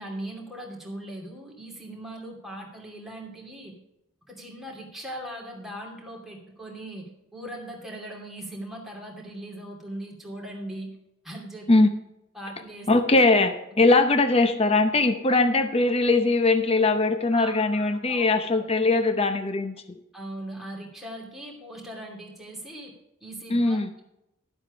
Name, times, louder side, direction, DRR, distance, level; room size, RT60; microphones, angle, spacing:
voice 1, 0.0-3.8 4.3-11.0 11.2-11.7 12.3-12.9 13.7-13.8 15.3-15.4 17.3-18.7 20.1-22.9 23.2-24.0, right 1 dB, ahead, -2 dB, 2.7 m, -39 dB
voice 2, 12.9-19.7 23.5-23.9, left 2 dB, 25° left, 8 dB, 0.8 m, -21 dB
12.0 x 7.9 x 5.0 m, 0.86 s
head